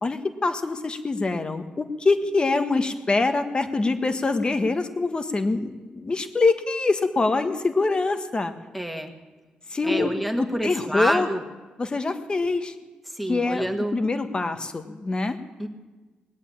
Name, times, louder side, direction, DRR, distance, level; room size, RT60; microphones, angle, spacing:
voice 1, 0.0-8.5 9.7-10.1 10.4-11.3 11.8-12.7 13.3-15.4, left 3 dB, 30° left, 8 dB, 1.3 m, -24 dB
voice 2, 8.7-9.1 9.8-11.4 13.1-14.0 15.6-15.7, equal, ahead, 5 dB, 1.7 m, -27 dB
19.5 x 8.3 x 8.6 m, 1.2 s
cardioid pair, 100°, 3 cm